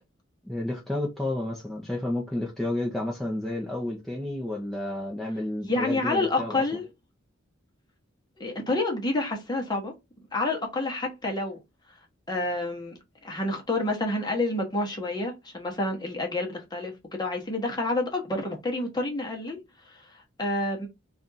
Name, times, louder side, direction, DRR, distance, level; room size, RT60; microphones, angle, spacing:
voice 1, 0.4-6.5, left 1 dB, ahead, 0.7 m, -31 dB
voice 2, 5.6-6.8 8.4-9.9 10.3-11.6 12.3-20.9, left 2 dB, 20° left, 1.0 m, -29 dB
3.3 x 2.5 x 4.0 m
head